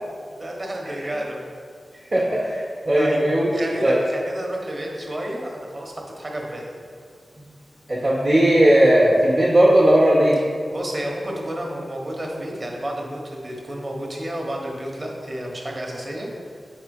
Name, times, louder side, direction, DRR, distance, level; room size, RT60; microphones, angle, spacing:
voice 1, 0.3-1.4 2.2-2.3 3.0-3.2 3.5-6.8 7.4-7.5 10.7-16.5, right 1 dB, 35° right, 0 dB, 1.1 m, -31 dB
voice 2, 2.1-3.5 3.8-4.0 7.9-10.4, right 1 dB, 55° right, -6 dB, 1.2 m, -17 dB
4.5 x 4.3 x 5.3 m, 2.1 s
wide cardioid pair, 95°, 0 cm